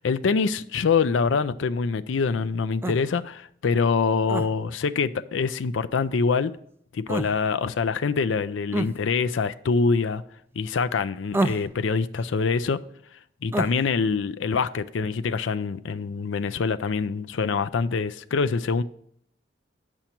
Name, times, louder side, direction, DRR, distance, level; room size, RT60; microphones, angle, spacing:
voice 1, 0.0-6.5 6.9-10.2 10.6-12.8 13.4-18.8, left 5 dB, 85° left, 0.5 m, -25 dB
sound 1, 2.8-3.0 4.3-4.5 7.1-7.3 8.7-8.9 11.3-11.7 13.5-13.8, right 2 dB, 15° right, 0.3 m, -26 dB
8.9 x 7.1 x 4.4 m
head